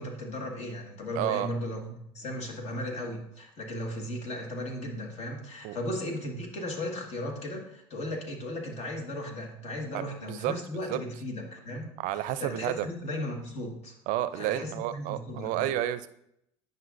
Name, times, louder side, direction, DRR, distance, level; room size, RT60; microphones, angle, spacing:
voice 1, 0.0-11.9 12.4-14.0 14.3-15.7, left 1 dB, 50° left, 1 dB, 1.7 m, -36 dB
voice 2, 1.2-1.5 5.6-5.8 9.9-10.5 10.9-11.0 12.0-12.9 14.1-16.1, right 13 dB, 65° right, 14 dB, 0.5 m, -30 dB
9.6 x 5.3 x 2.5 m, 0.75 s
supercardioid pair, 80°, 14 cm